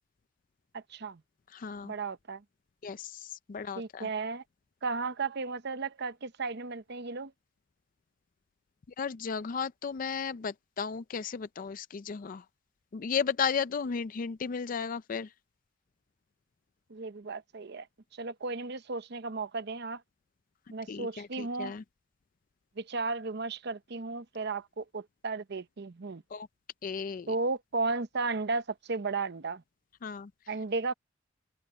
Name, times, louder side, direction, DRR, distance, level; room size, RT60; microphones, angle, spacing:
voice 1, 0.7-1.2 1.8-2.4 3.8-4.4 4.8-7.3 16.9-17.9 18.2-20.0 20.7-21.7 22.8-26.2 27.3-29.6 30.5-30.9, right 3 dB, 60° right, 0.8 m, -34 dB
voice 2, 1.5-1.9 2.8-4.1 9.0-12.4 12.9-15.3 20.9-21.8 26.3-26.5 26.8-27.3 30.0-30.3, left 6 dB, 45° left, 0.4 m, -34 dB
open air
head